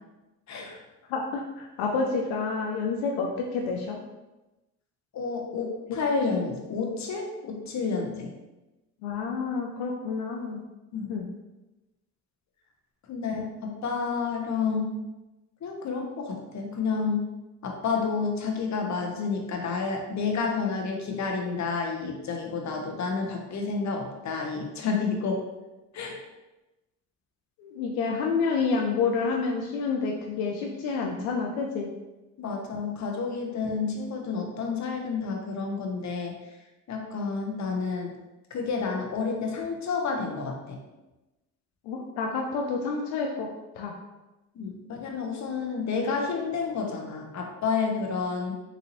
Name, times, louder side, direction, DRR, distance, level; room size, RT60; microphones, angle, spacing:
voice 1, 0.5-0.8 5.1-8.3 10.9-11.1 13.1-15.0 15.6-17.3 17.6-25.4 25.9-26.2 32.4-36.3 36.9-38.1 38.5-40.8 44.5-48.5, left 4 dB, 50° left, 2 dB, 0.9 m, -30 dB
voice 2, 1.1-4.0 9.0-10.6 11.1-11.3 27.6-31.9 41.9-43.5 43.8-43.9, left 4 dB, 85° left, 1 dB, 0.5 m, -29 dB
3.9 x 2.6 x 2.9 m, 1.0 s
supercardioid pair, 60°, 37 cm